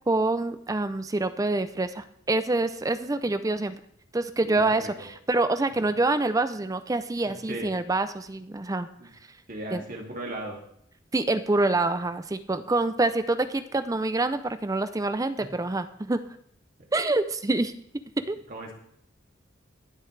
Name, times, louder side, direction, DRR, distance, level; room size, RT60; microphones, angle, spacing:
voice 1, 0.1-3.8 4.1-8.9 9.7-9.8 11.1-16.2 16.9-17.7 18.3-18.4, right 2 dB, 20° right, 11 dB, 0.5 m, -26 dB
voice 2, 4.4-5.1 7.2-7.7 9.0-9.1 9.5-10.6 18.5-18.7, right 1 dB, 45° right, 0 dB, 2.4 m, -37 dB
22.5 x 8.0 x 3.3 m, 0.69 s
head